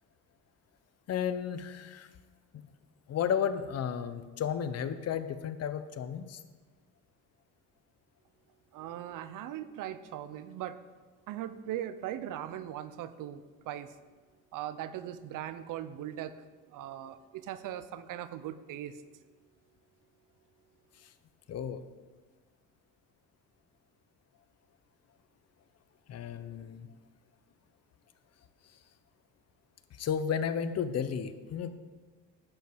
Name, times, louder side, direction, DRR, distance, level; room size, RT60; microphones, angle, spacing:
voice 1, 1.1-2.1 3.1-6.4 21.5-21.8 26.1-26.9 30.0-31.7, left 8 dB, 50° left, 11 dB, 0.8 m, -33 dB
voice 2, 8.7-10.8 11.3-13.9 14.5-16.3 16.7-19.0, right 11 dB, 70° right, 13 dB, 0.8 m, -39 dB
11.5 x 5.5 x 7.8 m, 1.4 s
cardioid pair, 110°, 33 cm